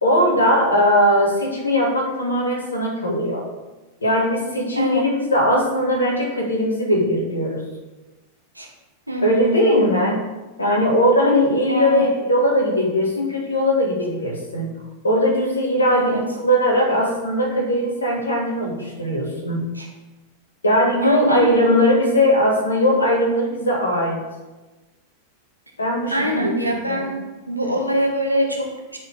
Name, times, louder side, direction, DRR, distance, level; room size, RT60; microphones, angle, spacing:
voice 1, 0.0-3.5 4.0-7.6 9.2-10.2 10.6-14.7 15.0-19.6 20.6-24.2 25.8-26.5 26.8-27.2, equal, 75° left, -1 dB, 1.8 m, -19 dB
voice 2, 9.1-9.6 11.6-12.1 15.9-16.2 19.7-19.9 21.0-21.8 26.1-27.2 27.5-29.0, right 1 dB, 85° right, 1 dB, 1.1 m, -24 dB
9.8 x 4.6 x 3.6 m, 1.1 s
figure-of-eight pair, 90°, 0 cm